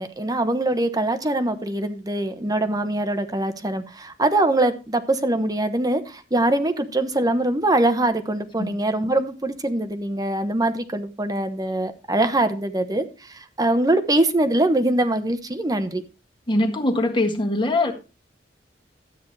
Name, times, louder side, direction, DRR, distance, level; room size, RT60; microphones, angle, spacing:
voice 1, 0.0-16.0, right 1 dB, 20° right, 1.1 m, -23 dB
voice 2, 16.5-17.9, left 1 dB, 30° left, 1.8 m, -22 dB
13.0 x 9.1 x 3.3 m
head